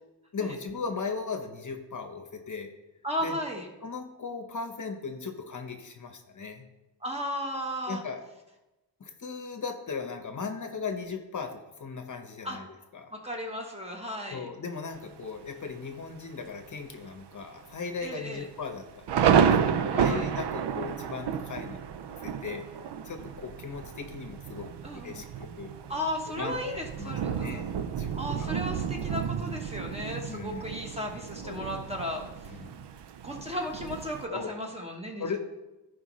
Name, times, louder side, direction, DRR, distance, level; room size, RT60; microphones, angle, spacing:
voice 1, 0.3-2.7 3.2-3.4 3.8-6.7 7.9-8.2 9.0-12.7 12.9-13.1 14.3-21.8 22.2-22.6 23.0-25.7 26.4-26.6 27.0-27.7 27.9-28.5 30.3-30.6 31.4-31.7 32.6-32.8 34.3-34.5 35.2-35.4, left 5 dB, 45° left, 6 dB, 0.9 m, -37 dB
voice 2, 3.0-3.7 7.0-8.0 12.4-12.6 13.1-14.5 18.0-18.4 19.8-20.3 24.8-25.2 25.9-27.6 28.1-32.6 33.2-35.4, equal, 15° right, 1 dB, 1.0 m, -35 dB
Thunder, 14.9-15.5 16.0-16.1 16.4-16.8 17.2-17.3 18.0-34.3, right 7 dB, 70° right, 0.6 m, -31 dB
15.0 x 5.1 x 3.1 m, 1.0 s
wide cardioid pair, 155°, 43 cm